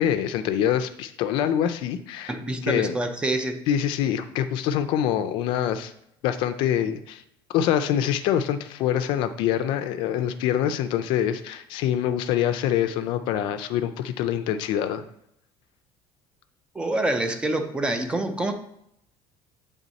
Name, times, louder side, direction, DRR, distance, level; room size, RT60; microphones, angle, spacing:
voice 1, 0.0-2.4 2.6-2.9 3.7-5.9 6.2-7.2 7.5-15.0, left 10 dB, 60° left, 10 dB, 0.5 m, -25 dB
voice 2, 2.3-3.6 16.7-18.5, right 2 dB, 10° right, 7 dB, 0.5 m, -26 dB
8.3 x 3.5 x 4.0 m, 0.75 s
cardioid pair, 165°, 9 cm